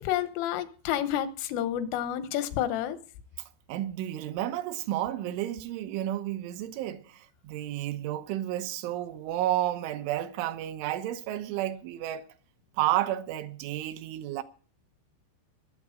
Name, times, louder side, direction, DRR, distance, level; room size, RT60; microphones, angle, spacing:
voice 1, 0.0-3.0, left 11 dB, 85° left, 3.7 m, -29 dB
voice 2, 3.7-12.3 12.8-14.4, right 13 dB, 80° right, 3.3 m, -31 dB
21.0 x 8.2 x 5.1 m
omnidirectional pair, 5.6 m